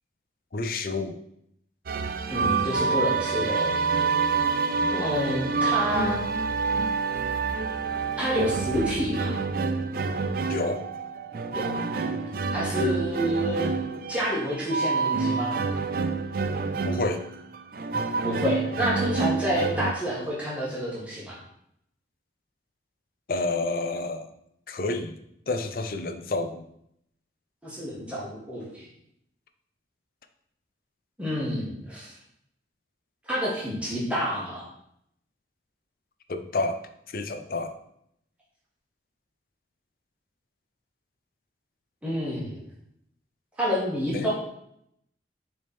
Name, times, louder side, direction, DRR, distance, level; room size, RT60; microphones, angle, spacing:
voice 1, 0.5-1.2 4.8-4.9 10.5-10.8 16.8-17.2 23.3-24.3 24.7-25.2 25.5-26.6 36.3-36.8 37.1-37.7 44.1-44.3, left 2 dB, 50° left, 8 dB, 0.5 m, -29 dB
sound 1, 1.9-19.9, right 4 dB, 50° right, 0.4 m, -27 dB
voice 2, 2.3-4.0 4.9-6.2 8.2-9.4 11.5-11.7 12.5-13.7 14.1-15.6 18.2-21.4 27.6-28.9 31.2-32.1 33.3-34.7 42.0-42.6 43.6-44.3, equal, 5° right, -7 dB, 1.7 m, -29 dB
6.6 x 3.4 x 4.3 m, 0.74 s
head